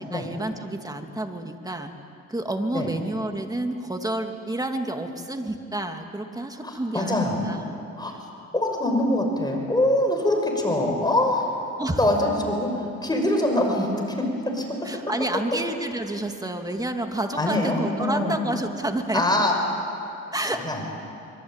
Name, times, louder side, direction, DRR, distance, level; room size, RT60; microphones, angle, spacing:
voice 1, 0.0-1.9 2.3-7.8 11.8-12.0 14.8-19.2 20.3-20.6, right 1 dB, 10° right, 5 dB, 2.4 m, -29 dB
voice 2, 6.6-7.4 8.0-8.3 8.5-11.6 12.0-14.7 17.4-18.4 19.1-19.5 20.5-20.8, left 1 dB, 15° left, 2 dB, 5.8 m, -24 dB
24.5 x 23.5 x 9.0 m, 2.6 s
cardioid pair, 90°, 30 cm